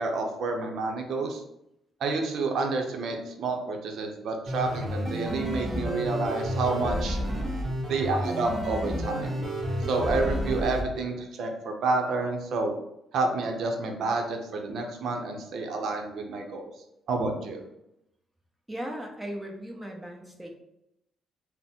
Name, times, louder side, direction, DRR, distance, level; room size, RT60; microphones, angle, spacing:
voice 1, 0.0-1.4 2.0-7.2 7.9-9.4 9.9-12.7 13.1-16.7 17.1-17.6, right 3 dB, 70° right, 3 dB, 0.7 m, -29 dB
sound 1, 4.5-10.8, equal, 25° right, 1.4 m, -31 dB
voice 2, 18.7-20.5, equal, 10° right, 1 dB, 0.8 m, -37 dB
3.9 x 2.1 x 4.2 m, 0.82 s
cardioid pair, 90°, 0 cm